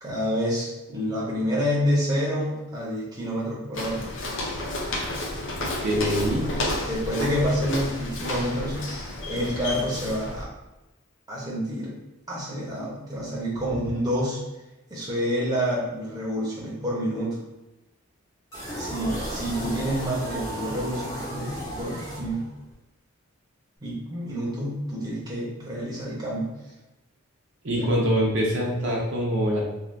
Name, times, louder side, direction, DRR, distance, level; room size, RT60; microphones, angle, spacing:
voice 1, 0.0-4.1 6.9-8.8 9.2-10.5 11.3-11.9 12.3-14.4 14.9-17.4 18.8-22.5 23.8-26.5 27.7-27.9, equal, 20° right, -6 dB, 0.7 m, -28 dB
Walk footsteps, 3.7-10.4, left 1 dB, 60° left, 0.5 m, -31 dB
voice 2, 5.8-6.4 27.6-29.7, equal, 55° right, -3 dB, 0.6 m, -24 dB
sound 1, 18.5-22.7, right 1 dB, 15° left, 0.8 m, -34 dB
3.4 x 2.4 x 2.5 m, 1.0 s
head